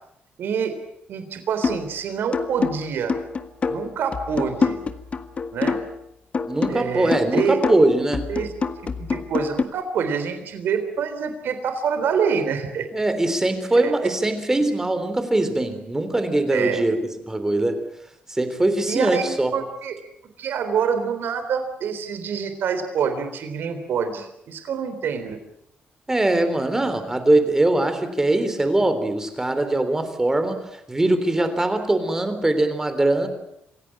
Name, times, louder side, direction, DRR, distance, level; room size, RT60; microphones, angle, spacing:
voice 1, 0.4-0.7 1.1-3.2 3.7-4.8 5.5-5.8 6.7-7.6 8.3-8.5 9.0-12.9 13.7-13.9 16.5-16.8 18.9-20.0 20.4-25.4, right 6 dB, 75° right, 8 dB, 3.7 m, -26 dB
sound 1, 1.6-2.0 2.3-6.0 6.3-9.6, left 5 dB, 35° left, 1.6 m, -26 dB
voice 2, 6.5-8.3 12.9-17.0 17.3-17.8 18.3-19.5 26.1-30.6 30.9-33.3, right 2 dB, 15° right, 9 dB, 3.4 m, -21 dB
26.5 x 16.5 x 8.9 m, 0.79 s
cardioid pair, 130°, 4 cm